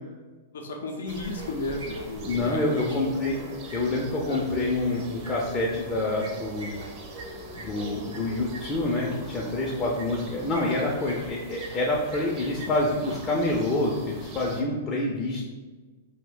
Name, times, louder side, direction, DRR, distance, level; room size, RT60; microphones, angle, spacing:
voice 1, 0.5-3.1 4.3-4.5, left 2 dB, 80° left, 1 dB, 0.4 m, -34 dB
sound 1, 0.9-1.5 1.8-3.8 5.2-8.6 9.9-10.2 10.5-11.3 11.6-12.3 12.6-12.7 13.0-13.2, right 2 dB, 90° right, 0.6 m, -44 dB
sound 2, 1.1-14.6, right 2 dB, 40° right, 0.5 m, -42 dB
voice 2, 2.3-3.4 3.7-6.8 7.6-15.5, left 2 dB, 20° left, -3 dB, 0.4 m, -27 dB
2.5 x 2.1 x 3.7 m, 1.3 s
hypercardioid pair, 130°, 0 cm